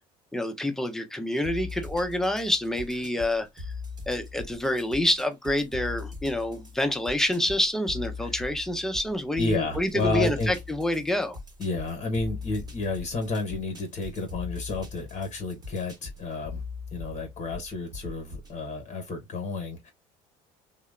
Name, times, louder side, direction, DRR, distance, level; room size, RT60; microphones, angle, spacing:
voice 1, 0.3-3.7 4.1-11.4, left 1 dB, ahead, 0.5 m, -27 dB
sound 1, 1.4-18.6, left 4 dB, 20° right, 1.0 m, -41 dB
voice 2, 9.4-10.5 11.6-16.6 16.9-19.9, left 3 dB, 45° left, 0.9 m, -31 dB
2.8 x 2.0 x 2.3 m
hypercardioid pair, 75°, 19 cm